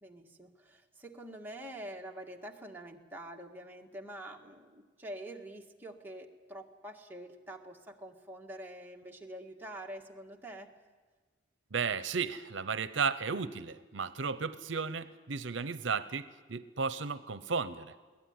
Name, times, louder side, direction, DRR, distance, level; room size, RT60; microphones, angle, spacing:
voice 1, 0.0-10.7, right 1 dB, 10° right, 0 dB, 1.8 m, -46 dB
voice 2, 11.7-17.9, right 5 dB, 75° right, 13 dB, 0.8 m, -34 dB
23.0 x 18.0 x 9.6 m, 1.4 s
head